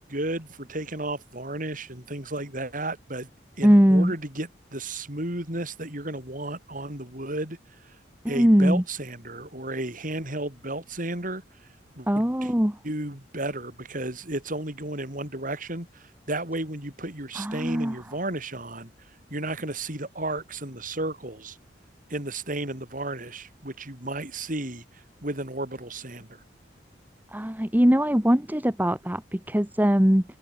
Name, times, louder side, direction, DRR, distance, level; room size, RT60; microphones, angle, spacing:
voice 1, 0.0-3.3 3.6-7.6 8.3-11.4 11.9-12.5 12.8-18.9 19.3-21.6 22.1-26.4, right 2 dB, 45° right, 6.8 m, -33 dB
voice 2, 3.6-4.1 8.2-8.8 12.1-12.8 17.3-17.9 27.3-30.2, equal, 10° right, 1.5 m, -21 dB
open air
head